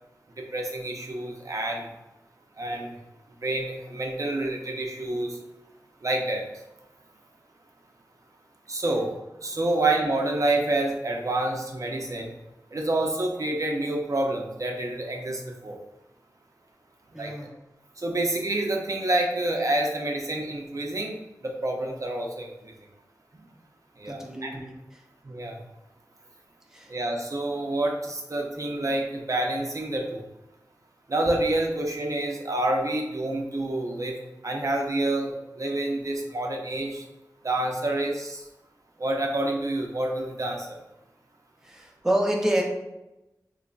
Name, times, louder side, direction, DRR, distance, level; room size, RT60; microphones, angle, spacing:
voice 1, 0.5-1.9 2.6-2.9 3.4-5.3 6.0-6.4 8.7-9.1 9.4-12.3 12.7-15.8 17.2-17.3 18.0-21.1 21.4-22.5 24.0-24.6 25.3-25.6 26.9-30.2 31.1-34.1 34.4-37.0 37.4-38.4 39.0-40.7, right 2 dB, 50° right, 1 dB, 0.5 m, -28 dB
voice 2, 17.1-17.5 24.1-25.0 26.7-26.9 41.6-42.6, right 1 dB, 5° right, -1 dB, 0.5 m, -28 dB
3.8 x 3.0 x 2.3 m, 0.95 s
wide cardioid pair, 70°, 7 cm